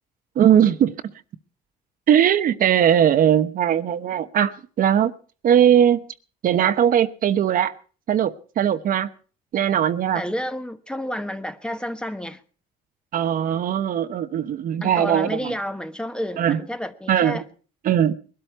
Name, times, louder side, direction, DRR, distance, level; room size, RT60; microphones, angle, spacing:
voice 1, 0.4-0.9 2.1-5.1 5.4-6.0 6.4-7.7 8.1-9.1 9.5-10.2 13.1-15.5 16.4-16.6 17.1-17.4 17.8-18.1, right 9 dB, 55° right, 1.0 m, -19 dB
voice 2, 10.1-12.4 14.8-17.4, equal, 5° left, 1.2 m, -30 dB
21.5 x 12.5 x 4.5 m
cardioid pair, 110°, 17 cm